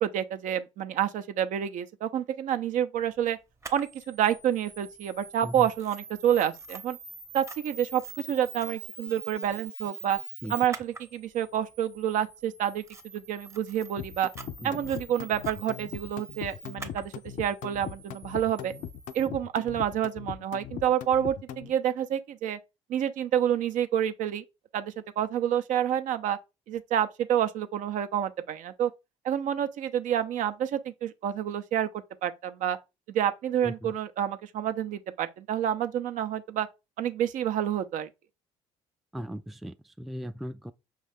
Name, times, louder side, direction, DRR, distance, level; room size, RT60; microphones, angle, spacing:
voice 1, 0.0-3.4 3.7-7.0 7.3-10.2 10.5-12.8 13.1-14.3 14.6-17.1 17.4-18.7 19.1-22.6 22.9-24.4 24.7-26.4 26.7-28.9 29.2-31.9 32.2-32.8 33.1-36.7 37.0-38.1, right 10 dB, 60° right, 0.6 m, -28 dB
Camera, 3.6-19.3, right 3 dB, 20° right, 0.8 m, -45 dB
sound 1, 14.0-21.7, left 9 dB, 60° left, 0.5 m, -39 dB
voice 2, 33.6-33.9 39.1-40.7, equal, ahead, 0.3 m, -38 dB
5.5 x 2.4 x 3.4 m
hypercardioid pair, 60°, 15 cm